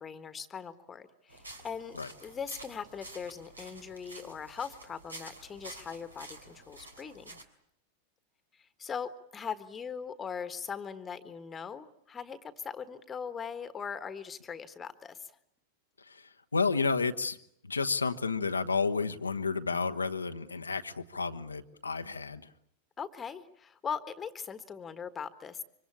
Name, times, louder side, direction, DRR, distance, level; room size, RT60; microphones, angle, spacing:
voice 1, 0.0-7.4 8.6-15.3 23.0-25.6, left 6 dB, 20° left, 12 dB, 1.5 m, -40 dB
sound 1, 1.3-7.4, right 2 dB, 80° right, 3.1 m, -49 dB
voice 2, 16.5-17.4 17.7-22.4, left 4 dB, 80° left, 9 dB, 1.1 m, -31 dB
25.5 x 25.0 x 8.6 m, 0.69 s
figure-of-eight pair, 90°, 0 cm